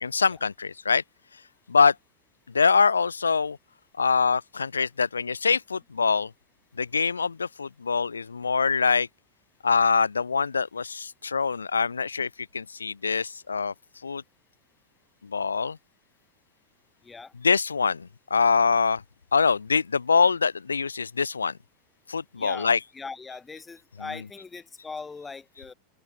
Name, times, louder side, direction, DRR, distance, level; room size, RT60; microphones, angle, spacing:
voice 1, 0.0-1.0 1.7-1.9 2.5-3.6 4.0-6.3 6.8-9.1 9.6-12.3 12.5-13.7 14.0-14.2 15.2-15.8 17.4-19.0 19.3-21.5 22.1-22.8, left 5 dB, 75° left, 0.9 m, -24 dB
voice 2, 22.4-25.7, left 4 dB, 15° left, 1.8 m, -40 dB
figure-of-eight pair, 90°, 0 cm